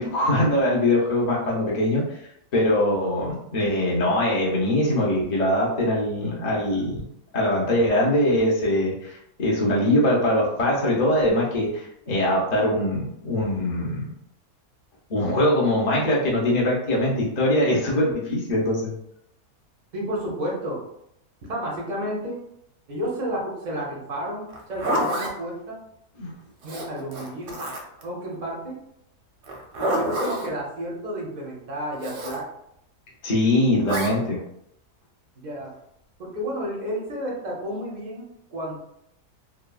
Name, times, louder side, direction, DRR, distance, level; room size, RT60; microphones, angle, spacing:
voice 1, 0.0-7.1 7.3-14.1 15.1-18.9 26.2-26.3 33.2-34.4, left 1 dB, 70° left, -5 dB, 0.4 m, -22 dB
voice 2, 19.9-20.8 21.5-22.4 22.9-25.8 26.6-27.6 28.0-28.8 29.8-32.5 35.4-35.7 36.2-38.2 38.5-38.8, right 1 dB, 50° right, -3 dB, 0.5 m, -31 dB
Zipper (clothing), 24.5-25.3 26.6-28.0 29.4-30.5 32.0-32.4 33.9-34.1, equal, 90° right, 1.3 m, -27 dB
3.1 x 2.1 x 2.3 m, 0.76 s
omnidirectional pair, 1.7 m